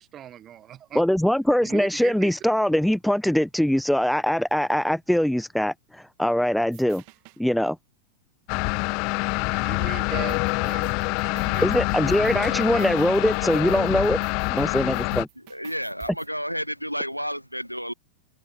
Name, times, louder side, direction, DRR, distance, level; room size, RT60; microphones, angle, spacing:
voice 1, 0.0-1.0 1.6-2.3 9.5-10.8 11.2-11.8 12.2-12.9, right 10 dB, 30° right, 6.2 m, -39 dB
voice 2, 0.9-7.0 7.4-7.8 11.6-14.2 14.5-15.3, equal, ahead, 0.8 m, -22 dB
sound 1, 6.7-7.4 10.3-16.3, right 40 dB or more, 45° right, 2.4 m, -47 dB
sound 2, 8.5-15.2, left 31 dB, 45° left, 1.3 m, -26 dB
voice 3, 15.5-17.9, equal, 90° right, 0.4 m, -31 dB
figure-of-eight pair, 90°, 0 cm